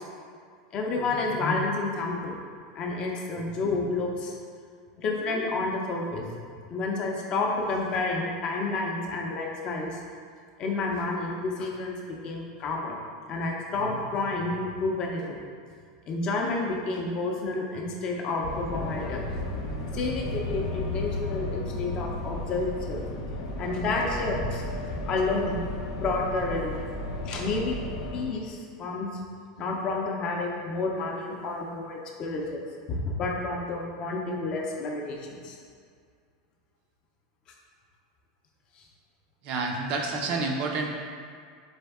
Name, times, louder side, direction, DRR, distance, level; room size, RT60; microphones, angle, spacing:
voice 1, 0.7-2.4 2.8-4.3 5.0-6.3 6.7-9.9 10.6-13.0 13.3-15.4 16.1-19.3 19.9-23.0 23.6-24.6 25.1-25.7 25.9-26.8 27.3-27.8 28.1-29.1 29.6-35.6, left 3 dB, 30° left, 0 dB, 0.5 m, -30 dB
sound 1, 18.4-28.3, left 1 dB, 75° left, 0.6 m, -34 dB
voice 2, 39.4-40.9, right 3 dB, 40° right, 2 dB, 0.5 m, -29 dB
4.1 x 3.4 x 3.4 m, 2.1 s
supercardioid pair, 160°, 3 cm